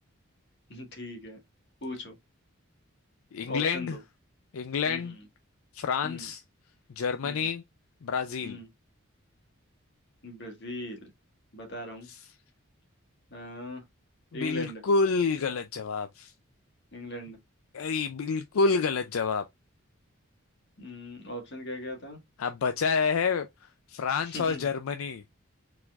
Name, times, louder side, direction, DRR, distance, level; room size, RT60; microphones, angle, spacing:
voice 1, 0.7-1.4 1.8-2.1 3.4-4.0 4.9-5.1 6.0-6.3 7.2-7.5 8.4-8.7 10.2-11.1 11.5-12.1 13.3-13.8 14.3-14.8 16.9-17.4 20.8-22.2 24.2-24.7, left 1 dB, 50° left, 1.6 m, -39 dB
voice 2, 3.3-4.0 4.5-5.2 5.7-6.4 7.0-7.6 8.0-8.6 12.1-12.2 14.3-16.3 17.7-19.4 22.4-23.5 23.9-25.2, left 5 dB, 75° left, 0.4 m, -28 dB
4.6 x 4.2 x 2.4 m
head